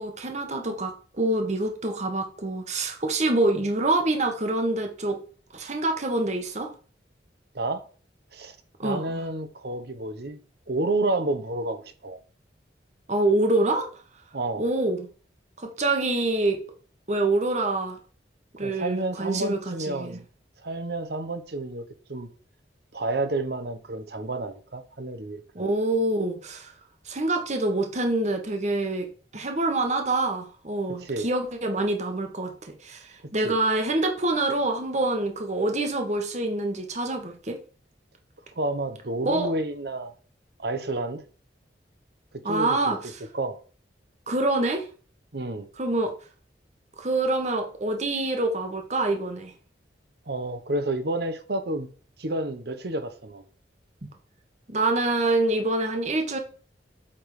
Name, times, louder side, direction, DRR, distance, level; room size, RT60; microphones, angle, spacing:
voice 1, 0.0-5.2 5.5-6.7 8.8-9.2 13.1-13.9 14.6-15.1 15.6-16.6 17.1-18.0 18.6-20.2 25.5-26.7 27.0-29.1 29.3-32.5 32.8-37.6 39.2-39.5 42.4-43.0 44.3-44.9 45.8-46.1 47.0-49.5 54.0-54.1 54.7-56.4, right 2 dB, 40° right, 1.3 m, -26 dB
voice 2, 8.8-10.4 10.7-12.2 14.3-14.7 18.6-20.2 20.6-22.3 22.9-25.7 30.9-31.3 33.2-33.6 38.5-40.1 40.6-41.2 42.4-43.0 43.3-43.6 45.3-45.7 50.3-51.9 52.2-53.4, right 2 dB, 60° right, 1.0 m, -30 dB
8.6 x 3.8 x 4.9 m
head